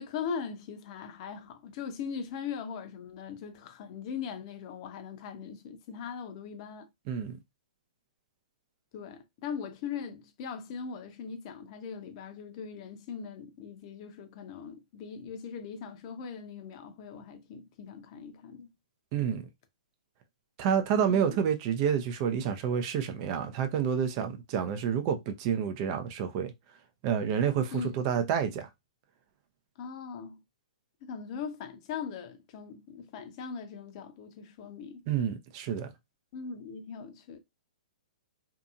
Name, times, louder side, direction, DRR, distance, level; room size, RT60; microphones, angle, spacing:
voice 1, 0.0-6.9 8.9-18.7 21.1-21.4 27.7-27.9 29.8-30.4 31.0-35.0 36.3-37.4, left 6 dB, 45° left, 0.7 m, -40 dB
voice 2, 7.1-7.4 19.1-19.4 20.6-26.5 27.0-28.7 35.1-35.9, right 8 dB, 40° right, 0.6 m, -29 dB
2.7 x 2.6 x 2.4 m
hypercardioid pair, 130°, 4 cm